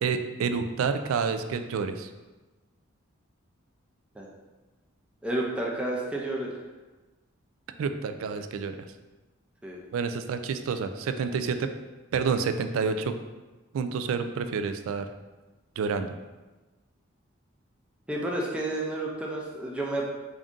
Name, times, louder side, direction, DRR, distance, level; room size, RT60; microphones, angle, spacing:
voice 1, 0.0-2.1 7.8-8.8 9.9-11.7 12.1-13.1 13.7-15.1 15.8-16.1, right 5 dB, 80° right, 9 dB, 0.3 m, -28 dB
voice 2, 5.2-6.5 9.6-9.8 18.1-20.0, right 1 dB, 5° right, -3 dB, 0.4 m, -30 dB
3.6 x 2.6 x 3.6 m, 1.2 s
head